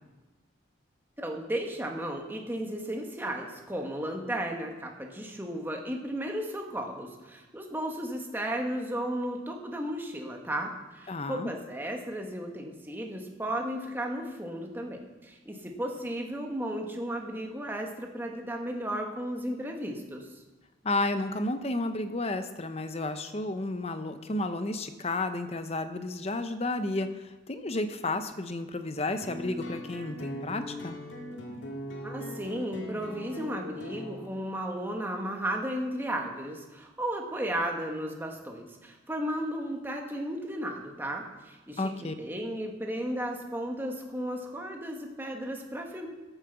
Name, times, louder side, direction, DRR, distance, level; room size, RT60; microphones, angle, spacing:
voice 1, 1.2-20.4 32.0-46.1, right 1 dB, 10° right, 2 dB, 1.3 m, -34 dB
voice 2, 11.1-11.5 20.8-31.0 41.8-42.1, left 2 dB, 30° left, 9 dB, 0.7 m, -32 dB
sound 1, 29.2-34.3, equal, 65° left, 1.9 m, -40 dB
9.8 x 8.6 x 6.9 m, 1.2 s
head